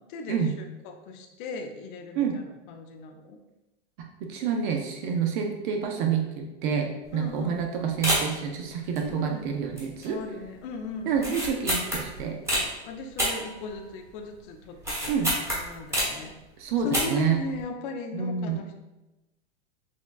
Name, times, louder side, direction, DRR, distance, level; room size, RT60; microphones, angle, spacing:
voice 1, 0.1-3.4 7.1-7.6 9.0-9.5 10.0-11.1 12.8-15.1 15.4-16.3 16.8-18.7, left 4 dB, 45° left, 5 dB, 0.6 m, -37 dB
voice 2, 4.0-10.2 11.1-12.4 15.1-15.3 16.6-17.4 18.1-18.6, right 7 dB, 45° right, 3 dB, 0.5 m, -28 dB
sound 1, 7.0-7.3 7.6-7.7 8.0-8.5 8.9-9.4 9.7-10.2 10.4-10.5 11.1-12.7 13.2-14.1 14.4-16.3 16.8-17.3 17.6-17.7, equal, 10° right, 1.1 m, -28 dB
6.0 x 2.2 x 2.3 m, 1.0 s
supercardioid pair, 140°, 35 cm